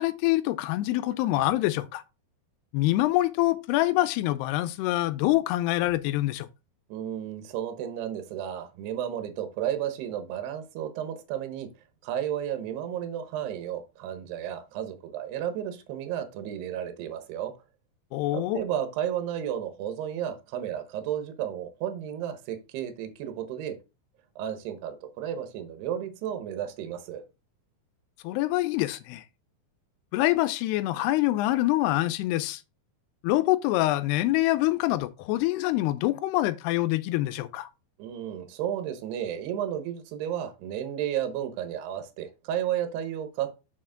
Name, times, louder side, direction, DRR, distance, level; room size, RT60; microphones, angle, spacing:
voice 1, 0.0-2.0 2.7-6.5 18.1-18.6 28.2-29.2 30.1-32.6 33.2-37.7, left 17 dB, 90° left, 2.6 m, -25 dB
voice 2, 6.9-11.7 12.0-17.5 18.3-23.8 24.4-27.2 38.0-43.5, right 10 dB, 85° right, 3.0 m, -33 dB
6.6 x 6.5 x 3.8 m
omnidirectional pair, 4.6 m